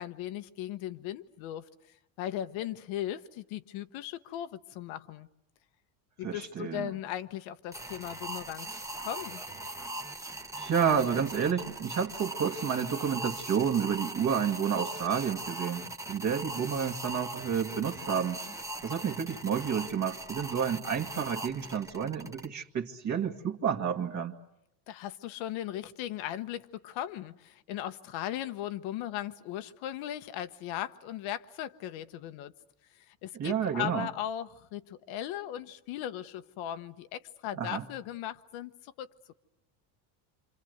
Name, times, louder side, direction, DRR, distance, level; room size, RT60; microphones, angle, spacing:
voice 1, 0.0-1.7 2.2-5.3 6.2-9.4 24.9-32.5 33.1-39.1, left 12 dB, 70° left, 1.3 m, -38 dB
voice 2, 6.2-6.9 10.6-18.4 18.8-24.4 33.3-34.1 37.5-37.8, right 7 dB, 35° right, 2.1 m, -30 dB
sound 1, 7.7-22.5, right 2 dB, 5° right, 1.2 m, -40 dB
28.0 x 26.0 x 8.0 m
cardioid pair, 135°, 49 cm